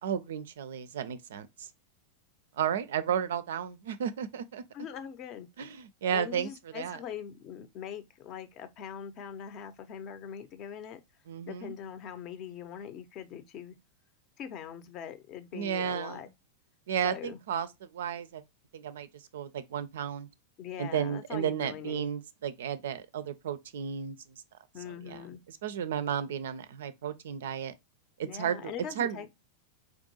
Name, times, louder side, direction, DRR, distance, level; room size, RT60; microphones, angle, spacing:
voice 1, 0.0-1.7 2.6-4.6 5.6-7.0 11.3-11.7 15.5-16.2 16.9-18.4 18.7-20.3 20.8-24.2 25.0-25.2 25.5-27.7 28.2-29.2, right 8 dB, 60° right, 0.4 m, -33 dB
voice 2, 4.7-5.5 6.1-11.0 11.5-13.7 14.4-16.3 17.0-17.4 20.6-22.1 24.7-25.4 28.3-29.3, left 8 dB, 35° left, 0.6 m, -42 dB
4.5 x 2.5 x 2.7 m
figure-of-eight pair, 90°, 0 cm